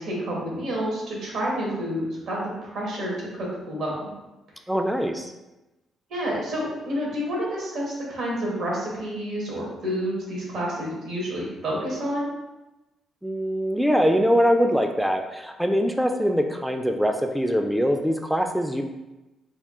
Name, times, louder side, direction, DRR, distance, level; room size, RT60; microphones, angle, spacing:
voice 1, 0.0-3.9 6.1-12.3, equal, 70° right, -4 dB, 1.4 m, -29 dB
voice 2, 4.7-5.3 13.2-18.8, equal, ahead, 4 dB, 0.3 m, -23 dB
3.6 x 2.3 x 3.6 m, 1.0 s
cardioid pair, 90°, 0 cm